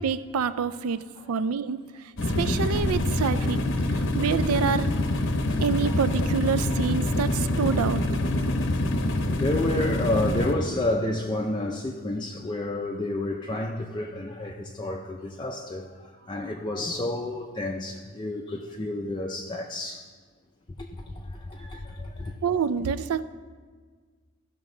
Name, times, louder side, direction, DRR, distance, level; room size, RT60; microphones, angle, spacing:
voice 1, 0.0-1.0 1.3-1.8 2.4-3.6 3.9-4.9 5.6-8.0 22.4-23.2, right 6 dB, 75° right, 14 dB, 0.4 m, -27 dB
sound 1, 2.2-10.5, left 1 dB, 60° left, 0.8 m, -25 dB
voice 2, 9.4-15.9 16.3-20.0 21.5-22.3, left 1 dB, 20° left, 1 dB, 0.4 m, -30 dB
14.5 x 6.0 x 3.8 m, 1.6 s
head